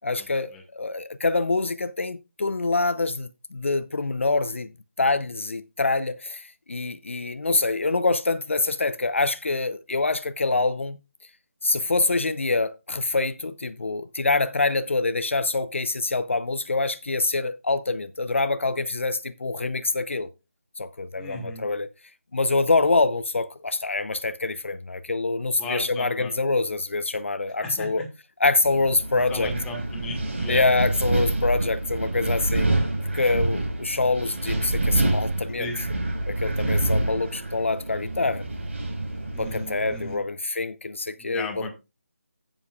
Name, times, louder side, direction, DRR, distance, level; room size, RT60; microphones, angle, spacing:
voice 1, 0.0-4.7 5.0-11.0 11.6-20.3 20.8-21.9 22.3-28.0 28.4-29.5 30.5-32.7 33.1-35.7 36.3-38.4 39.4-41.7, left 3 dB, 60° left, 0.7 m, -25 dB
voice 2, 21.2-21.6 25.6-26.3 27.6-28.1 29.3-30.7 35.6-35.8 39.3-40.2 41.2-41.7, left 2 dB, 5° left, 1.7 m, -35 dB
Wind, 28.6-40.1, right 2 dB, 55° right, 4.7 m, -27 dB
16.0 x 7.5 x 2.4 m
figure-of-eight pair, 160°, 8 cm